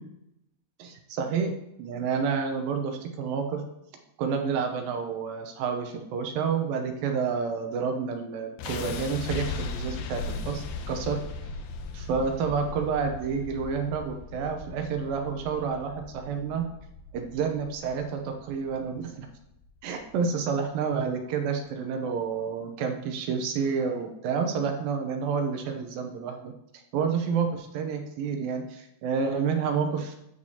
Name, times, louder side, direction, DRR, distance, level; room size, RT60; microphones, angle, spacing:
voice 1, 0.8-1.5 1.8-3.6 4.2-11.2 11.9-16.6 17.1-19.3 19.8-30.1, right 6 dB, 75° right, 5 dB, 2.3 m, -29 dB
sound 1, 8.6-20.6, left 4 dB, 80° left, 2.2 m, -38 dB
13.0 x 4.6 x 2.8 m, 0.82 s
omnidirectional pair, 4.7 m